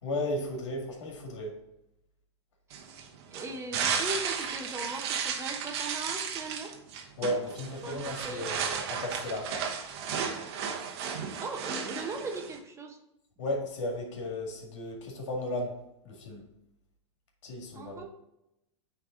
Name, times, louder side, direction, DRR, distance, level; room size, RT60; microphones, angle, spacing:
voice 1, 0.0-1.6 7.2-9.6 13.4-16.5 17.4-18.0, left 1 dB, 70° left, 1 dB, 2.0 m, -35 dB
sound 1, 2.7-12.6, right 7 dB, 60° right, 1.1 m, -34 dB
voice 2, 3.3-6.7 7.8-8.5 11.4-13.0 17.7-18.0, right 2 dB, 20° right, 3 dB, 1.0 m, -39 dB
9.3 x 3.5 x 3.8 m, 0.86 s
hypercardioid pair, 115°, 16 cm